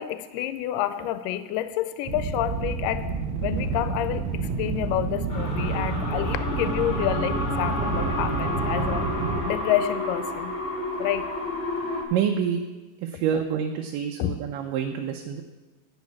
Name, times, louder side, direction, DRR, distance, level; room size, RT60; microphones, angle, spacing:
voice 1, 0.0-3.1 3.4-4.3 4.6-9.1 9.4-10.5 11.0-11.3 14.2-14.3, left 12 dB, 85° left, 12 dB, 2.2 m, -28 dB
sound 1, 2.1-9.4, right 4 dB, 70° right, 1.2 m, -29 dB
sound 2, 5.3-12.0, left 1 dB, 55° left, 0.7 m, -30 dB
voice 2, 12.1-12.6 13.2-15.4, right 8 dB, 85° right, 4 dB, 2.3 m, -27 dB
10.5 x 5.4 x 8.4 m, 1.2 s
omnidirectional pair, 3.8 m